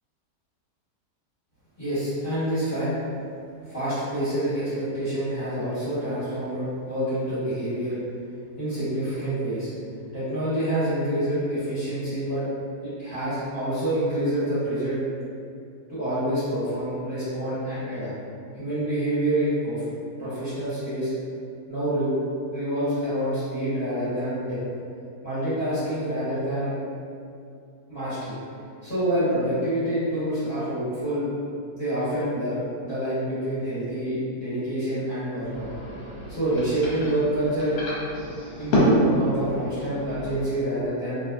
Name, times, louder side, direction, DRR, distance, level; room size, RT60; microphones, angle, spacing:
voice 1, 1.8-2.9 3.7-7.9 8.6-9.7 10.1-12.4 12.8-15.0 15.9-18.1 18.5-19.8 20.2-21.1 21.7-22.1 22.5-24.6 25.2-26.7 27.9-28.4 28.8-31.3 31.7-32.6 32.8-35.7 36.3-37.7 38.6-41.2, right 1 dB, 35° left, -16 dB, 1.3 m, -27 dB
sound 1, 35.4-40.4, equal, 70° left, 1.2 m, -27 dB
2.8 x 2.2 x 2.4 m, 2.4 s
omnidirectional pair, 1.8 m